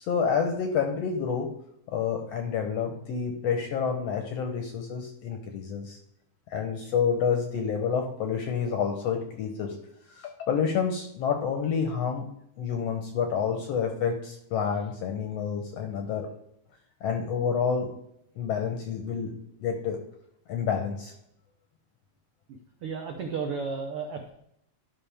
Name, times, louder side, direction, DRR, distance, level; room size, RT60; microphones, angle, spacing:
voice 1, 0.1-1.5 1.9-6.0 6.5-9.7 10.2-12.3 12.6-16.3 17.0-17.9 18.4-19.3 19.6-20.0 20.5-21.1, left 6 dB, 70° left, 4 dB, 1.6 m, -28 dB
voice 2, 22.8-24.3, right 5 dB, 90° right, 3 dB, 1.2 m, -33 dB
12.0 x 5.5 x 3.4 m, 0.75 s
omnidirectional pair, 3.8 m